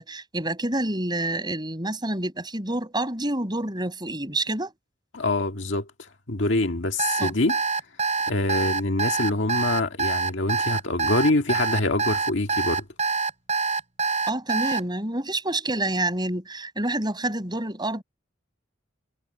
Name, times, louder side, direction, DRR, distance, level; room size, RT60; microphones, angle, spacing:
voice 1, 0.0-4.7 7.2-7.3 14.3-18.0, right 1 dB, 25° right, 6.8 m, -28 dB
voice 2, 5.1-5.9 6.3-7.6 8.3-12.9, left 2 dB, 70° left, 1.9 m, -25 dB
Alarm, 7.0-14.8, right 5 dB, 40° right, 2.7 m, -25 dB
head